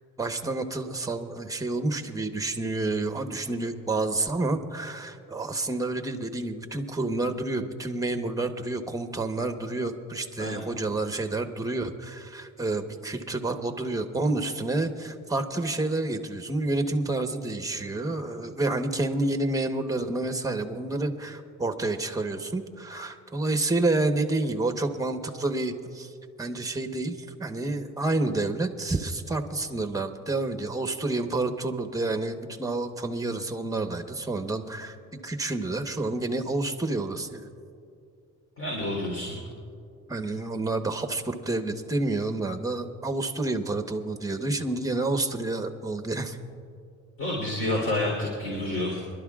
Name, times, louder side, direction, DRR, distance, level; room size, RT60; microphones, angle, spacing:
voice 1, 0.2-26.1 26.4-35.0 35.2-37.4 40.1-46.4, right 2 dB, 10° right, 7 dB, 1.1 m, -29 dB
voice 2, 38.6-39.4 47.2-49.0, left 1 dB, 45° left, -2 dB, 3.5 m, -29 dB
26.5 x 12.0 x 2.4 m, 2.5 s
cardioid pair, 90°, 30 cm